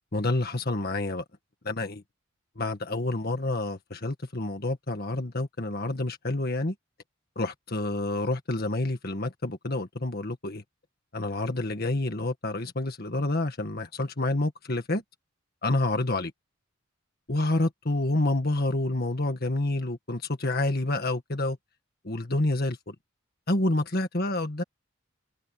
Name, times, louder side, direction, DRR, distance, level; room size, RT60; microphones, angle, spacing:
voice 1, 0.1-1.2 1.6-2.0 2.6-6.7 7.4-10.6 11.1-15.0 15.6-16.3 17.3-21.6 22.0-23.0 23.5-24.6, left 2 dB, 45° left, 1.7 m, -28 dB
open air
head